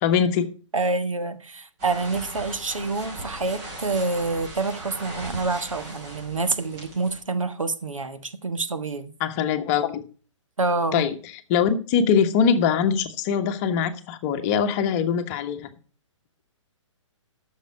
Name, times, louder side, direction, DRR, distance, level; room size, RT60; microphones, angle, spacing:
voice 1, 0.0-0.5 9.2-10.0 10.9-11.2 11.5-15.7, left 7 dB, 30° left, 1.2 m, -22 dB
voice 2, 0.7-9.1 10.6-11.1, right 3 dB, 85° right, 1.3 m, -27 dB
sound 1, 1.8-7.2, right 1 dB, 35° right, 5.0 m, -39 dB
13.5 x 6.6 x 4.8 m
figure-of-eight pair, 130°, 16 cm